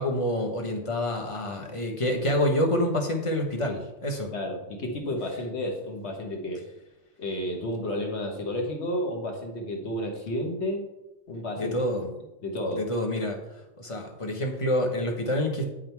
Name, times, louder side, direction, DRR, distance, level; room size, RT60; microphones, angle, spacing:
voice 1, 0.0-4.3 11.6-12.1 12.7-13.4 13.8-15.7, left 1 dB, 25° left, 2 dB, 1.0 m, -27 dB
voice 2, 4.3-6.6 7.2-10.8 11.3-11.8 12.4-12.9, left 1 dB, 55° left, 2 dB, 1.5 m, -31 dB
9.4 x 3.8 x 4.6 m, 0.98 s
omnidirectional pair, 1.4 m